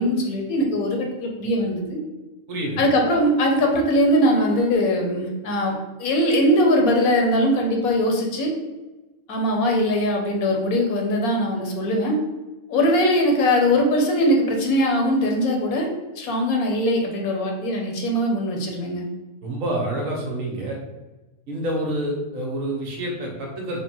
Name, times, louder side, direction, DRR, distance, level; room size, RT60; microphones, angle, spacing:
voice 1, 0.0-2.0 2.8-5.7 6.0-8.5 9.3-12.2 12.7-15.9 16.2-19.1, equal, 80° left, 1 dB, 1.2 m, -21 dB
voice 2, 2.5-2.9 19.4-20.8 21.5-23.8, right 1 dB, 70° right, -1 dB, 1.2 m, -27 dB
3.7 x 2.2 x 4.3 m, 1.1 s
omnidirectional pair, 1.5 m